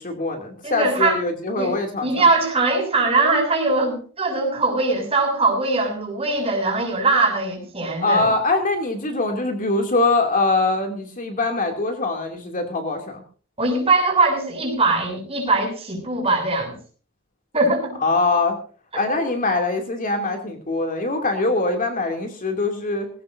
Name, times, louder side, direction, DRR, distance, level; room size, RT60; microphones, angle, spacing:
voice 1, 0.0-2.1 8.0-13.2 18.0-18.6 18.9-23.1, left 3 dB, 40° left, 4 dB, 2.7 m, -23 dB
voice 2, 0.6-1.2 1.6-1.7 2.0-8.3 13.6-16.8 17.5-18.0 18.9-19.0, right 3 dB, 25° right, 1 dB, 6.9 m, -21 dB
19.5 x 17.0 x 2.7 m, 0.41 s
head